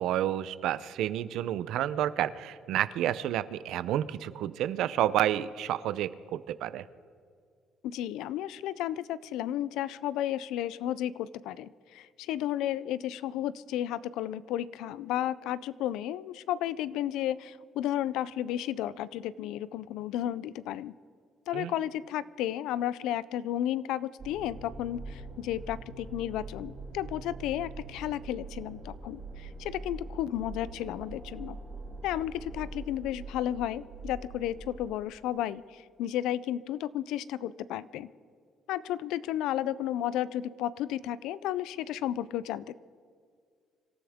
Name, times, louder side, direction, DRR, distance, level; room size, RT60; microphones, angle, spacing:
voice 1, 0.0-6.8 21.5-21.7, right 12 dB, 80° right, 15 dB, 0.6 m, -30 dB
voice 2, 7.8-20.9 21.5-31.6 32.0-38.1 38.7-42.7, left 12 dB, 90° left, 18 dB, 0.4 m, -33 dB
sound 1, 24.2-32.8, right 1 dB, ahead, 2.0 m, -50 dB
sound 2, 24.2-35.0, right 3 dB, 50° right, 3.3 m, -44 dB
26.0 x 13.5 x 3.6 m, 2.1 s
cardioid pair, 125°, 0 cm